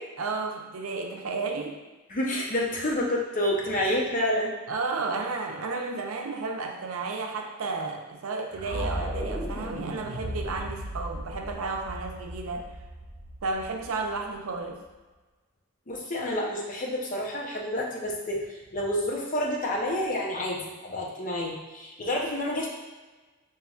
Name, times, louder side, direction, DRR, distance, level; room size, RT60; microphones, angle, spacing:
voice 1, 0.2-1.8 4.7-12.7 13.4-14.8, right 3 dB, 80° right, 2 dB, 0.5 m, -32 dB
voice 2, 2.1-4.5 15.9-22.7, left 1 dB, 40° left, -2 dB, 0.7 m, -29 dB
sound 1, 8.5-14.6, equal, 25° right, 1.2 m, -36 dB
5.5 x 3.0 x 2.3 m, 1.2 s
head